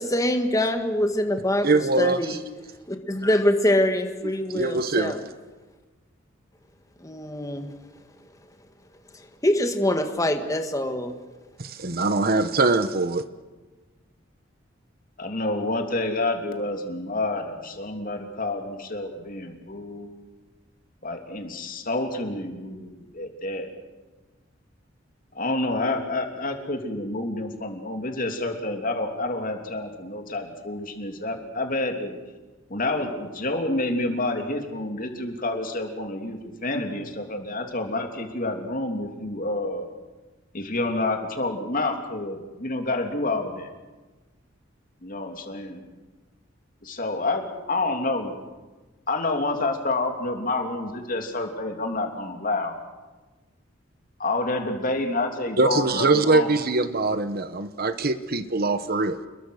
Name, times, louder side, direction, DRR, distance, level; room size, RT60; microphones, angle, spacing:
voice 1, 0.0-1.7 2.0-2.4 2.9-5.2 7.0-7.7 9.4-11.1, left 1 dB, 15° left, 6 dB, 1.8 m, -24 dB
voice 2, 1.6-2.4 4.5-5.1 11.6-13.2 55.6-59.3, right 3 dB, 50° right, 11 dB, 1.1 m, -23 dB
voice 3, 15.2-20.1 21.0-23.7 25.3-32.1 32.7-39.9 40.5-43.7 45.0-45.8 46.8-48.3 49.1-52.7 54.2-56.5, left 2 dB, 45° left, 4 dB, 3.0 m, -28 dB
28.5 x 21.5 x 6.5 m, 1.2 s
head